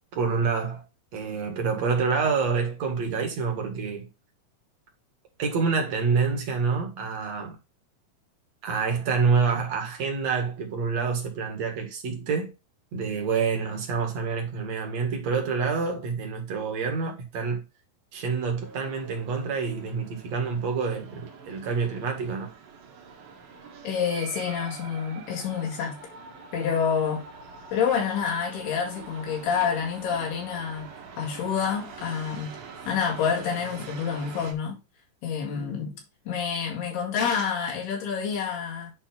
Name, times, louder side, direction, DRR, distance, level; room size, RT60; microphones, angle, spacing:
voice 1, 0.2-0.8 1.1-4.1 5.4-7.6 8.6-12.5 12.9-17.6 18.1-22.5, right 5 dB, 50° right, 2.8 m, -27 dB
sound 1, 18.6-34.5, right 5 dB, 70° right, 3.4 m, -44 dB
voice 2, 23.8-26.0 26.5-27.2 27.7-32.6 32.9-34.8 35.2-35.9 36.3-38.9, left 7 dB, 90° left, 4.0 m, -28 dB
10.5 x 3.6 x 4.4 m
omnidirectional pair, 4.4 m